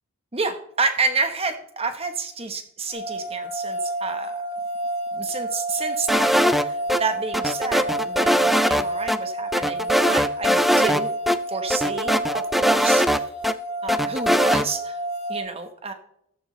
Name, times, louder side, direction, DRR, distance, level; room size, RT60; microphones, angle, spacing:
voice 1, 0.3-4.4 5.1-11.1 11.5-13.3 13.8-15.0 15.3-15.9, right 4 dB, 25° right, 7 dB, 1.1 m, -29 dB
sound 1, 2.9-15.4, right 1 dB, 50° left, 2.9 m, -30 dB
sound 2, 6.1-7.0 7.3-8.8 9.1-9.2 9.5-11.0 11.3-11.4 11.7-13.5 13.9-14.6, equal, ahead, 0.4 m, -20 dB
14.5 x 13.0 x 3.2 m, 0.75 s
head